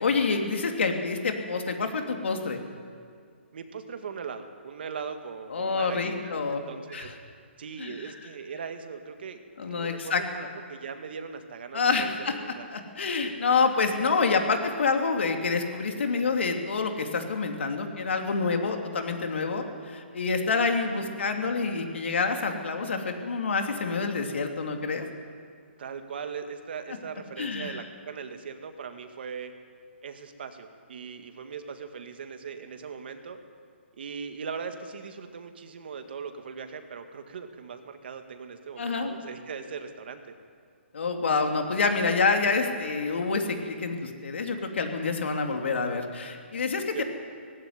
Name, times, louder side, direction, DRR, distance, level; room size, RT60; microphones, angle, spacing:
voice 1, 0.0-2.6 5.5-6.6 6.9-7.1 7.8-8.1 9.6-10.5 11.7-12.3 12.7-25.1 27.4-27.8 38.8-39.1 40.9-47.0, left 4 dB, 70° left, 4 dB, 3.1 m, -27 dB
voice 2, 3.5-7.2 7.6-12.7 20.9-21.1 25.8-29.5 30.0-33.4 33.9-40.3 46.9-47.0, right 6 dB, 55° right, 7 dB, 1.9 m, -39 dB
18.5 x 15.5 x 9.7 m, 2.1 s
hypercardioid pair, 165°, 7 cm